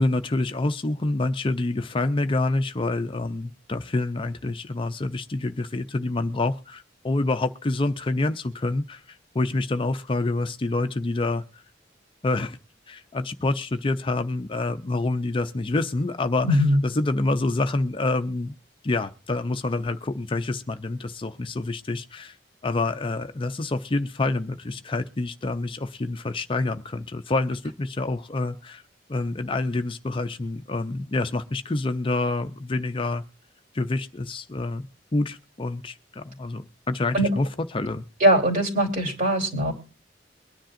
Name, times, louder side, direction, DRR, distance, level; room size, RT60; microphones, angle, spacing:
voice 1, 0.0-9.0 9.3-11.6 12.2-12.6 12.9-18.5 18.8-22.4 22.6-28.8 29.1-33.2 33.7-34.9 35.1-37.5 37.7-38.0, left 2 dB, 30° left, 8 dB, 0.5 m, -27 dB
voice 2, 16.4-16.8 37.1-37.3 38.2-39.7, equal, 45° right, 0 dB, 3.4 m, -21 dB
23.0 x 10.0 x 2.5 m, 0.36 s
head